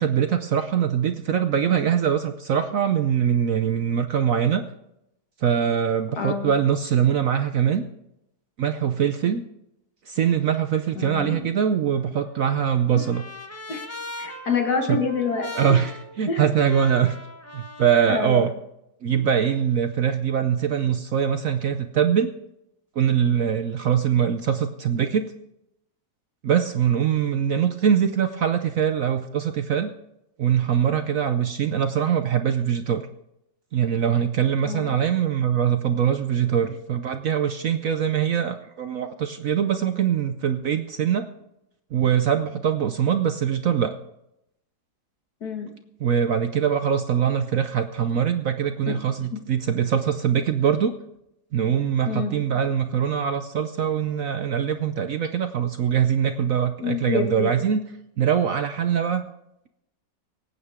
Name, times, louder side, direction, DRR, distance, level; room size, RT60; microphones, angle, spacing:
voice 1, 0.0-4.6 5.4-7.8 8.6-9.4 10.1-13.2 14.9-15.0 15.5-17.2 17.5-18.5 19.0-22.3 23.0-25.3 26.4-29.9 30.4-33.1 33.7-41.2 41.9-43.9 46.0-50.9 51.5-57.8 58.2-59.3, right 8 dB, 60° right, 8 dB, 0.9 m, -23 dB
voice 2, 6.2-6.5 11.0-11.5 13.7-13.8 14.2-15.5 16.3-16.5 18.1-18.5 19.1-19.3 34.7-34.9 45.4-45.7 48.9-49.0 49.3-49.4 52.1-52.4 56.8-57.5, left 5 dB, 60° left, 4 dB, 2.2 m, -27 dB
Trumpet, 12.0-18.3, left 2 dB, 10° left, 0.9 m, -40 dB
25.0 x 8.9 x 3.6 m, 0.82 s
omnidirectional pair, 1.9 m